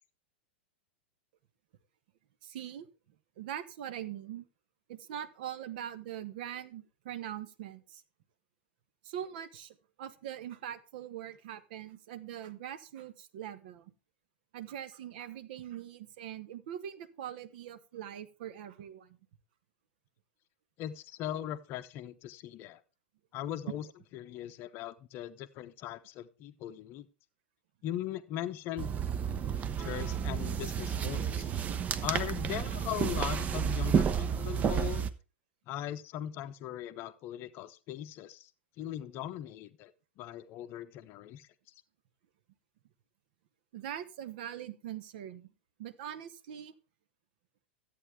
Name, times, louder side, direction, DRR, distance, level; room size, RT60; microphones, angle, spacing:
voice 1, 2.4-2.9 3.4-4.4 4.9-8.0 9.0-13.9 14.5-19.1 43.7-45.5 45.8-46.7, right 10 dB, 50° right, 12 dB, 1.0 m, -42 dB
voice 2, 20.8-22.8 23.3-23.9 24.1-27.1 27.8-28.9 29.6-31.5 32.0-35.1 35.7-38.5 38.8-39.9 40.2-41.5, left 12 dB, 35° left, 12 dB, 0.7 m, -39 dB
sound 1, 28.8-35.1, right 7 dB, 25° right, 0.7 m, -31 dB
13.5 x 8.6 x 3.5 m, 0.34 s
figure-of-eight pair, 95°, 6 cm